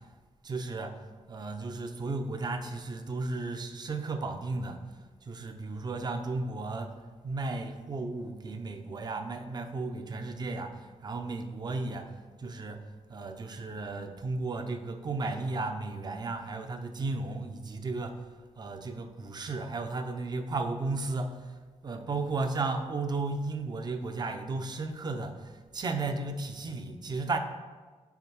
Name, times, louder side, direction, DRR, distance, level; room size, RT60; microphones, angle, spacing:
voice 1, 0.4-1.0 1.3-4.8 5.2-6.9 7.2-12.8 13.1-18.2 18.6-21.5 21.8-27.4, right 3 dB, 40° right, 7 dB, 0.6 m, -34 dB
5.8 x 4.7 x 6.1 m, 1.4 s
wide cardioid pair, 125°, 11 cm